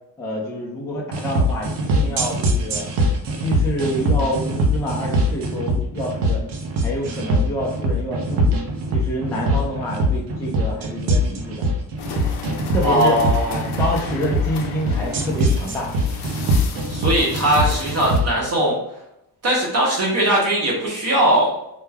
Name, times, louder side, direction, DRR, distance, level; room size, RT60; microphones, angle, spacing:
voice 1, 0.2-2.9 3.3-6.4 6.8-8.5 8.9-11.6 12.7-13.2 13.8-15.9, equal, 10° left, -2 dB, 0.3 m, -27 dB
sound 1, 1.1-18.3, equal, 80° right, 0.6 m, -22 dB
sound 2, 12.0-18.2, left 5 dB, 70° left, 0.6 m, -34 dB
voice 2, 12.8-13.6 16.9-18.8 19.4-21.5, right 1 dB, 40° right, -4 dB, 0.7 m, -19 dB
2.2 x 2.2 x 3.2 m, 0.80 s
cardioid pair, 145°, 40 cm